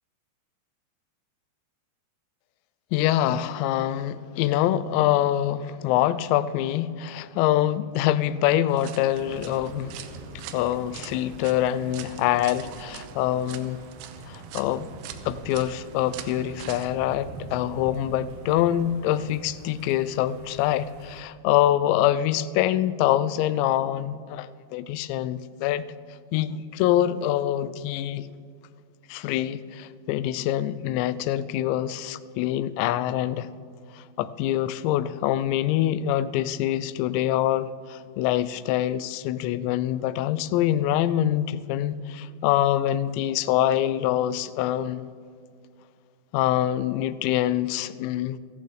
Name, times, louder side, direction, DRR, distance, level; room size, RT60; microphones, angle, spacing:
voice 1, 2.9-10.0 10.5-13.8 14.3-14.9 15.3-25.9 26.3-28.3 29.1-33.5 34.0-45.1 46.3-48.4, left 12 dB, 85° left, 2.8 m, -25 dB
sound 1, 8.7-16.9, right 10 dB, 85° right, 2.9 m, -44 dB
sound 2, 9.1-21.2, right 2 dB, 65° right, 2.6 m, -44 dB
29.0 x 11.5 x 3.3 m
omnidirectional pair, 5.1 m